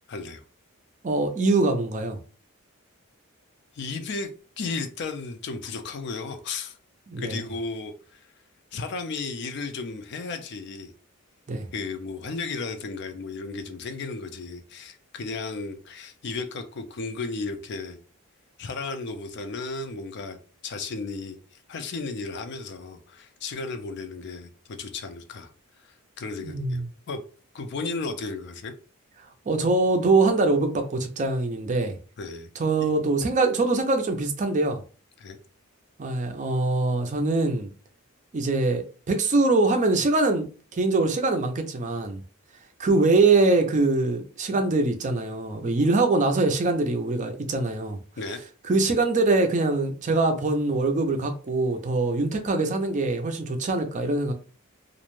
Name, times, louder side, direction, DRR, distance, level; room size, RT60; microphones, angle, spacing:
voice 1, 0.1-0.4 3.8-4.3 4.6-6.8 7.2-8.2 8.7-10.9 11.7-18.0 18.6-20.4 20.6-21.4 21.7-25.5 25.8-26.8 27.1-27.2 27.5-28.7 32.2-32.5 32.8-32.9 35.2-35.4 48.2-48.4, left 4 dB, 50° left, 0.4 m, -34 dB
voice 2, 1.0-2.2 7.1-7.4 11.5-11.7 26.4-26.9 29.5-32.0 32.6-34.8 36.0-37.7 38.3-42.2 42.8-48.0 48.7-54.3, right 3 dB, 35° right, 0.4 m, -23 dB
2.5 x 2.1 x 3.0 m
head